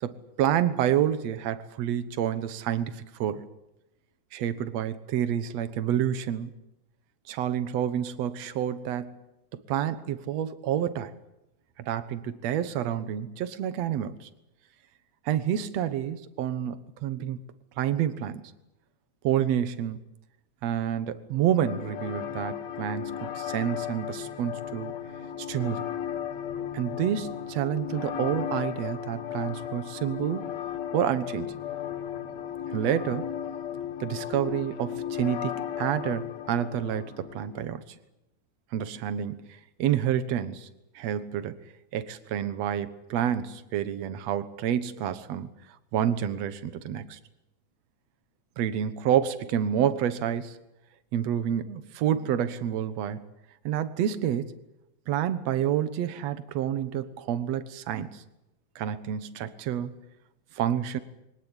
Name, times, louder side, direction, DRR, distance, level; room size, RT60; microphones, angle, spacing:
voice 1, 0.0-3.5 4.3-6.5 7.3-9.2 9.7-11.1 11.9-14.3 15.3-17.4 17.8-18.5 19.2-20.0 20.6-24.9 25.5-25.9 26.7-30.5 30.9-31.6 32.7-33.3 34.0-37.8 38.7-39.5 39.8-40.7 41.0-41.6 41.9-45.5 45.9-47.2 48.6-50.6 51.1-53.3 53.6-54.5 55.1-58.2 58.8-60.0 60.5-61.0, right 10 dB, 65° right, 13 dB, 2.3 m, -28 dB
sound 1, 21.6-37.6, left 9 dB, 65° left, 2.8 m, -35 dB
24.0 x 18.0 x 9.9 m, 0.92 s
omnidirectional pair, 3.5 m